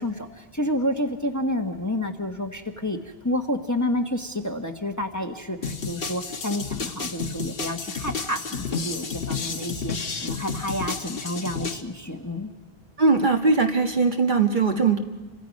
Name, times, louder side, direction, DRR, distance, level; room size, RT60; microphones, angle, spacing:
voice 1, 0.0-3.0 3.2-12.5, left 1 dB, 15° left, 4 dB, 1.2 m, -29 dB
sound 1, 5.6-11.8, left 5 dB, 65° left, 1.3 m, -31 dB
voice 2, 13.0-15.0, right 4 dB, 50° right, 3 dB, 1.6 m, -20 dB
30.0 x 25.5 x 5.3 m, 1.3 s
omnidirectional pair, 1.0 m